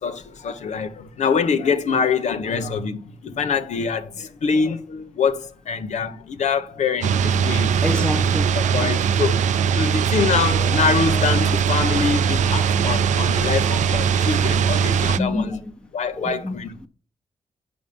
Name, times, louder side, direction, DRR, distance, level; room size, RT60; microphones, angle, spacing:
voice 1, 0.0-7.7 8.5-9.5 9.7-15.6 15.9-16.7, left 5 dB, 75° left, 0.8 m, -24 dB
sound 1, 7.0-15.2, right 7 dB, 90° right, 0.4 m, -20 dB
voice 2, 7.8-8.9 12.7-13.1 14.5-14.6 15.2-15.7 16.2-16.9, left 2 dB, 10° left, 1.0 m, -28 dB
6.9 x 5.3 x 5.1 m
cardioid pair, 75°, 12 cm